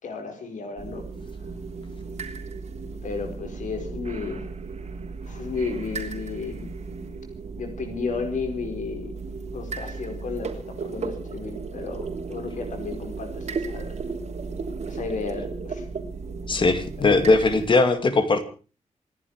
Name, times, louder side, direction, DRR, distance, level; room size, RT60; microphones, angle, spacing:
voice 1, 0.0-1.0 3.0-4.4 5.3-6.7 7.6-9.1 9.5-14.0 14.9-15.8 17.0-17.3, left 4 dB, 75° left, 5 dB, 4.6 m, -33 dB
sound 1, 0.8-17.7, right 4 dB, 60° right, 3.2 m, -35 dB
voice 2, 16.5-18.4, left 3 dB, 40° left, 9 dB, 2.5 m, -19 dB
27.0 x 11.0 x 4.8 m, 0.36 s
wide cardioid pair, 150°, 13 cm